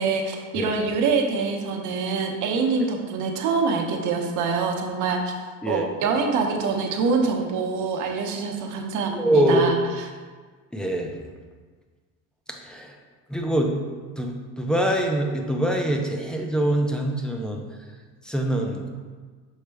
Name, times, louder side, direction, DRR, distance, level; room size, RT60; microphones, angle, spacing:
voice 1, 0.0-5.3 5.7-10.1, right 4 dB, 65° right, 2 dB, 0.9 m, -25 dB
voice 2, 9.1-9.6 10.7-11.1 12.6-12.9 13.3-13.7 14.2-17.6 18.3-18.9, right 1 dB, 5° left, 1 dB, 0.6 m, -24 dB
6.5 x 4.3 x 3.4 m, 1.5 s
cardioid pair, 130°, 32 cm